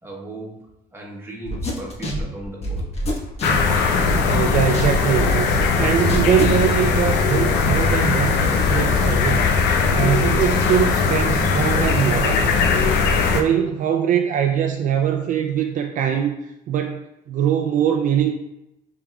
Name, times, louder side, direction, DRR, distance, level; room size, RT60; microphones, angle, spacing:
voice 1, 0.0-2.9, right 2 dB, 15° right, -2 dB, 1.2 m, -37 dB
sound 1, 1.5-4.4 4.7-6.6, equal, 40° left, 1.0 m, -27 dB
sound 2, 3.4-13.4, left 5 dB, 80° left, 0.6 m, -19 dB
voice 2, 4.2-9.4 9.9-12.5 13.2-18.3, right 9 dB, 50° right, 3 dB, 0.4 m, -22 dB
5.1 x 3.6 x 2.3 m, 0.88 s
cardioid pair, 110°, 17 cm